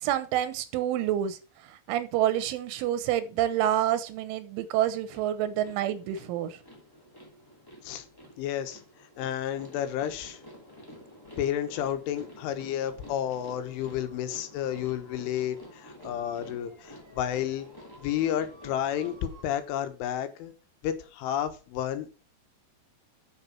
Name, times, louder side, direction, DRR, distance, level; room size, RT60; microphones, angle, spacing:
voice 1, 0.0-6.6, right 11 dB, 85° right, 3.5 m, -28 dB
sound 1, 5.1-19.4, left 1 dB, 10° left, 1.4 m, -49 dB
voice 2, 8.4-8.8 9.2-10.4 11.4-17.7 18.0-20.5 20.8-22.3, left 10 dB, 90° left, 3.7 m, -31 dB
7.8 x 6.9 x 5.8 m
omnidirectional pair, 5.4 m